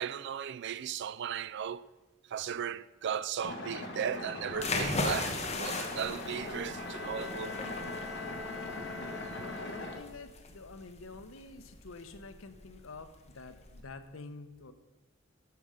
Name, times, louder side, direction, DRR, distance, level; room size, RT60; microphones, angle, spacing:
voice 1, 0.0-1.8 2.3-7.5, right 8 dB, 60° right, 0.4 m, -36 dB
sound 1, 3.4-10.0, left 1 dB, 60° left, 1.7 m, -41 dB
sound 2, 4.5-13.8, left 3 dB, 35° left, 1.0 m, -38 dB
Bowed string instrument, 6.5-10.4, left 4 dB, 35° right, 3.2 m, -45 dB
voice 2, 9.0-14.7, left 3 dB, 85° left, 0.8 m, -48 dB
12.5 x 5.6 x 5.0 m
head